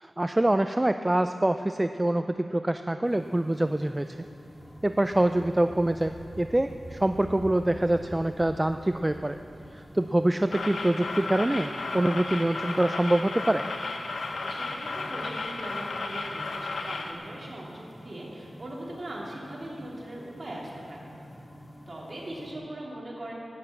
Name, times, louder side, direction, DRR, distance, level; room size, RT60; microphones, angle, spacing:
voice 1, 0.0-4.2 4.8-9.4 9.7-13.7, right 1 dB, 15° right, 9 dB, 0.3 m, -25 dB
sound 1, 3.0-22.5, equal, 25° left, 2.0 m, -49 dB
sound 2, 4.3-10.7, right 1 dB, 75° right, 3.7 m, -47 dB
sound 3, 10.5-17.1, left 3 dB, 90° left, 1.0 m, -34 dB
voice 2, 14.3-21.1 21.9-23.3, right 1 dB, 40° right, -4 dB, 3.0 m, -40 dB
12.0 x 9.6 x 8.0 m, 2.7 s
wide cardioid pair, 110°, 0 cm